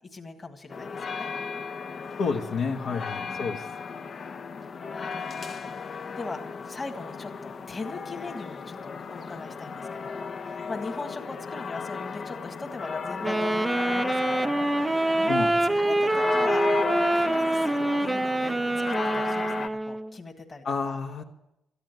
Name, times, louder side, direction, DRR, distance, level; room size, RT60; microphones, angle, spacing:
voice 1, 0.1-1.3 3.2-3.6 4.6-16.7 17.1-18.5 18.9-21.0, left 3 dB, 30° left, 4 dB, 1.8 m, -40 dB
sound 1, 0.7-19.7, left 5 dB, 50° left, 0.8 m, -34 dB
voice 2, 2.2-3.6 15.3-15.5 20.6-21.2, left 5 dB, 70° left, 0 dB, 1.5 m, -29 dB
Wind instrument woodwind instrument, 13.2-20.1, right 2 dB, 15° right, 0.5 m, -25 dB
13.5 x 10.0 x 9.1 m, 0.87 s
cardioid pair, 90°, 0 cm